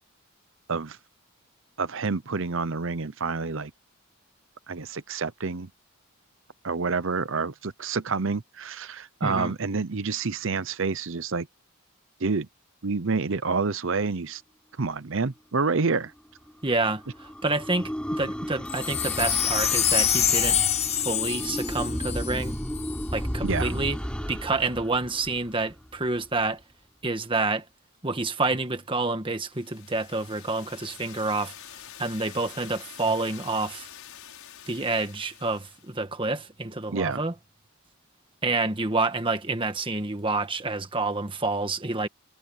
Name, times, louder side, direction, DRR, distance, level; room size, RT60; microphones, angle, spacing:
voice 1, 1.8-3.7 4.7-5.7 6.6-11.5 12.2-12.5 12.8-14.4 14.8-16.1 23.4-23.7 36.9-37.2, right 4 dB, 60° right, 0.8 m, -28 dB
voice 2, 9.2-9.5 16.6-22.6 23.1-24.0 24.3-26.6 27.0-27.6 28.0-31.5 32.0-33.9 34.7-37.3 38.4-42.1, right 3 dB, 25° right, 1.5 m, -28 dB
sound 1, 16.5-26.0, equal, 5° left, 6.0 m, -33 dB
Wind chime, 18.7-23.0 23.6-23.7, left 9 dB, 30° left, 1.1 m, -26 dB
sound 2, 29.4-35.9, left 10 dB, 70° left, 6.8 m, -46 dB
head